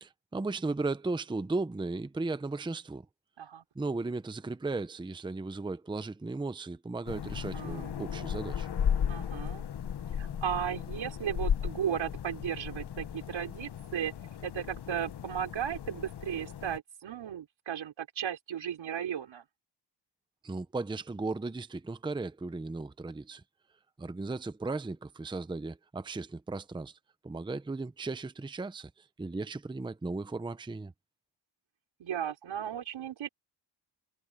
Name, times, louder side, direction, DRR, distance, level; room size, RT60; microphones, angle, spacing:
voice 1, 0.0-3.1 3.8-8.7 20.4-23.4 24.0-27.0 27.2-30.9, right 3 dB, 10° right, 0.6 m, -36 dB
sound 1, 7.1-16.8, left 8 dB, 60° left, 1.2 m, -35 dB
voice 2, 7.5-8.3 9.1-9.6 10.2-14.1 14.4-19.4 32.0-33.3, right 9 dB, 85° right, 4.3 m, -35 dB
wide cardioid pair, 135°, 45 cm